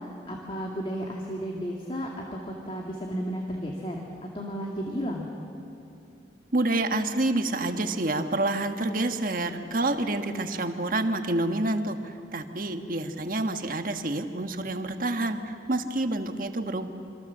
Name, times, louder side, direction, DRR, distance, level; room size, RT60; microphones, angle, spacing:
voice 1, 0.3-4.0 4.3-5.3, equal, 30° left, 0 dB, 2.1 m, -33 dB
voice 2, 6.5-16.9, right 2 dB, 50° right, 6 dB, 1.6 m, -28 dB
26.5 x 26.0 x 7.4 m, 2.7 s
head